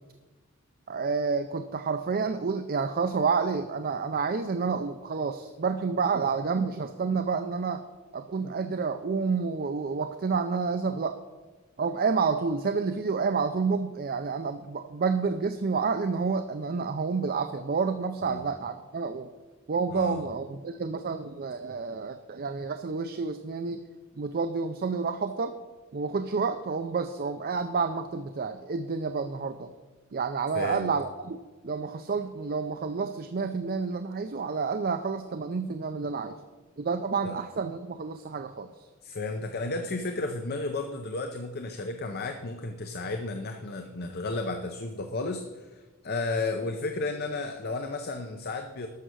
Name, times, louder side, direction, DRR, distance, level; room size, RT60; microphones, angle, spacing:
voice 1, 0.9-7.8 8.1-11.2 11.8-19.3 19.7-23.8 24.2-25.5 25.9-29.7 30.1-31.4 31.6-36.4 36.8-38.9, right 5 dB, 45° right, 9 dB, 0.5 m, -29 dB
voice 2, 19.9-20.2 30.5-30.9 37.2-37.4 39.0-48.9, left 3 dB, 50° left, 6 dB, 0.7 m, -33 dB
12.5 x 6.8 x 6.3 m, 1.3 s
head